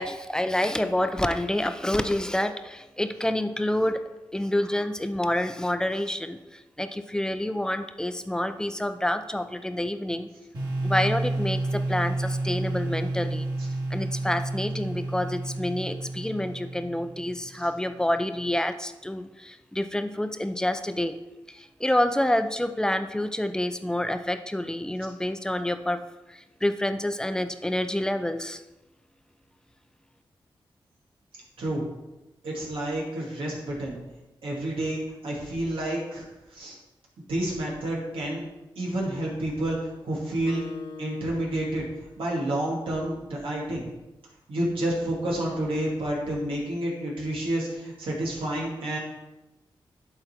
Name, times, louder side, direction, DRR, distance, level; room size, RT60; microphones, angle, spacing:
voice 1, 0.0-4.0 4.3-10.3 10.8-13.5 13.9-21.2 21.5-26.0 26.3-28.6, left 1 dB, 10° left, 9 dB, 0.6 m, -28 dB
sound 1, 10.5-17.4, right 2 dB, 50° right, 2.5 m, -30 dB
voice 2, 32.4-34.0 34.4-36.2 36.5-36.8 37.3-38.4 38.8-39.8 40.0-40.6 41.0-41.9 42.2-43.9 44.5-49.0, right 1 dB, 90° right, -3 dB, 2.2 m, -29 dB
Acoustic guitar, 40.5-43.2, left 4 dB, 70° left, 0.8 m, -44 dB
11.0 x 3.9 x 4.4 m, 1.0 s
cardioid pair, 55°, 9 cm